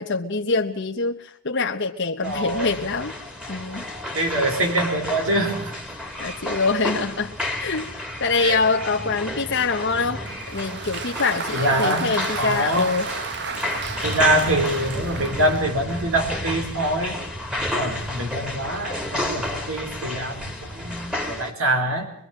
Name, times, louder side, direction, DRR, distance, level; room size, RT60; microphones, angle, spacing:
voice 1, 0.0-3.1 3.5-3.9 6.2-13.1, left 4 dB, 55° left, 1 dB, 1.2 m, -25 dB
sound 1, 2.2-21.5, left 1 dB, 5° right, 3.1 m, -31 dB
voice 2, 2.2-2.8 4.1-5.8 8.4-8.6 11.5-12.9 14.0-17.2 17.7-22.1, right 1 dB, 85° right, 4 dB, 4.7 m, -24 dB
Applause, 10.0-16.2, right 5 dB, 55° right, 1.3 m, -33 dB
24.5 x 22.0 x 7.5 m, 0.64 s
head